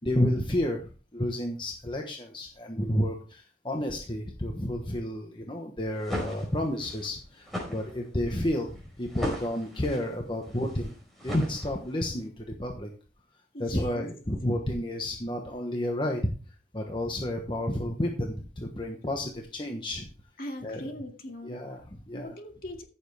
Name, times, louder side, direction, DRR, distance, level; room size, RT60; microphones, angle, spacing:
voice 1, 0.0-8.7 9.0-10.9 11.2-12.9 13.6-16.2 16.7-20.1 20.6-20.9 21.4-22.3, left 1 dB, 25° left, 2 dB, 1.2 m, -31 dB
sound 1, 5.8-12.1, equal, ahead, 4.6 m, -38 dB
voice 2, 13.5-14.1 20.4-21.6 22.1-22.8, left 1 dB, 55° left, 3 dB, 2.3 m, -39 dB
15.0 x 7.1 x 3.4 m, 0.37 s
head